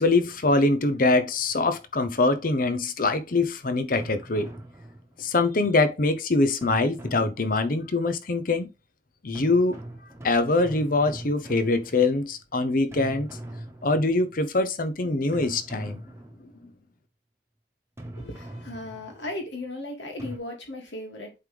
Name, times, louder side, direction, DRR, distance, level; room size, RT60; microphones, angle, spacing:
voice 1, 0.0-4.5 5.2-8.7 9.2-9.8 10.2-13.3 13.8-16.0, left 2 dB, 50° left, 0.8 m, -23 dB
sound 1, 4.0-5.4 6.6-7.9 9.3-12.4 12.9-14.4 15.3-16.7 18.0-19.4 20.2-20.4, right 1 dB, 15° right, 1.2 m, -42 dB
voice 2, 18.1-21.3, left 1 dB, 80° left, 2.4 m, -36 dB
7.9 x 3.9 x 3.4 m
head